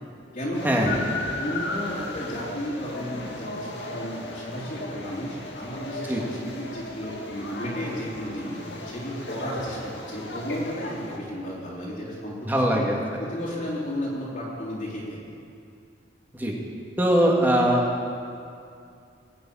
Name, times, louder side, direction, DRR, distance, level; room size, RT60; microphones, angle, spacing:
voice 1, 0.3-1.1 1.4-8.6 8.8-12.8 13.2-15.3, equal, 45° left, -8 dB, 3.1 m, -33 dB
sound 1, 0.5-11.2, left 2 dB, 70° left, 1.9 m, -36 dB
voice 2, 12.5-13.0 16.3-16.6 17.0-17.9, equal, 10° right, -2 dB, 1.9 m, -21 dB
20.0 x 6.9 x 8.6 m, 2.5 s
head